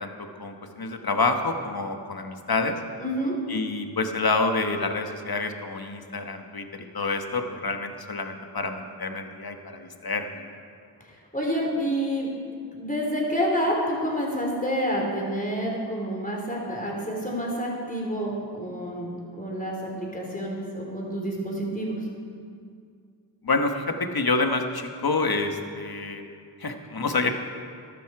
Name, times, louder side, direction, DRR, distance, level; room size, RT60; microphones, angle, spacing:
voice 1, 0.0-2.8 3.5-10.4 23.4-26.2 26.6-27.4, left 3 dB, 55° left, 6 dB, 1.3 m, -28 dB
voice 2, 3.0-3.4 11.3-12.3 12.7-19.1 19.4-22.0, equal, 20° left, -2 dB, 3.9 m, -28 dB
13.5 x 12.5 x 4.7 m, 2.3 s
cardioid pair, 40°, 44 cm